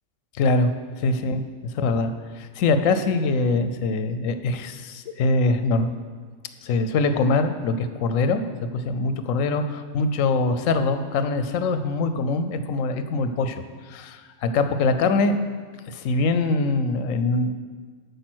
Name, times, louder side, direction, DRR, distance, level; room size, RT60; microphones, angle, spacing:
voice 1, 0.4-0.7 1.0-1.4 1.7-6.0 6.6-8.5 8.7-13.6 13.9-15.3 15.9-17.5, left 3 dB, 85° left, 9 dB, 1.0 m, -23 dB
8.7 x 5.2 x 6.1 m, 1.5 s
omnidirectional pair, 1.3 m